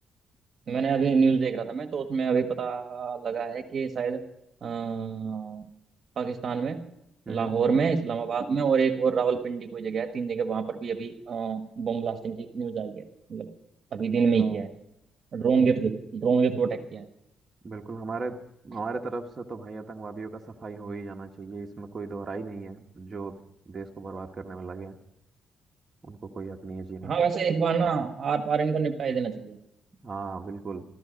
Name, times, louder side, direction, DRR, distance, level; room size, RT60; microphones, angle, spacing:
voice 1, 0.7-4.2 4.6-5.7 6.1-6.9 7.3-13.5 13.9-14.7 15.3-17.1 27.0-29.6, right 5 dB, 50° right, 7 dB, 1.4 m, -27 dB
voice 2, 14.3-14.7 17.6-18.4 18.6-23.4 23.6-25.0 26.0-27.1 30.0-30.8, right 4 dB, 30° right, 1 dB, 1.4 m, -37 dB
14.5 x 14.5 x 5.2 m, 0.84 s
cardioid pair, 90°, 0 cm